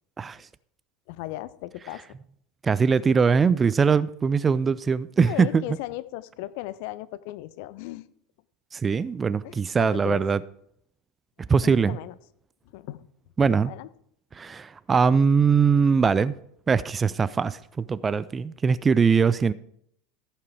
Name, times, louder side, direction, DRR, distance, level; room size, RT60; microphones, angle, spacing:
voice 1, 1.1-2.0 5.2-8.1 9.4-10.2 11.6-12.2 12.7-13.1 13.6-13.9, left 16 dB, 55° left, 17 dB, 0.5 m, -36 dB
voice 2, 2.6-5.6 8.7-10.4 11.5-12.0 13.4-13.7 14.4-16.3 16.7-19.5, right 5 dB, 20° right, 18 dB, 0.4 m, -21 dB
15.0 x 5.7 x 4.7 m, 0.70 s
figure-of-eight pair, 80°, 0 cm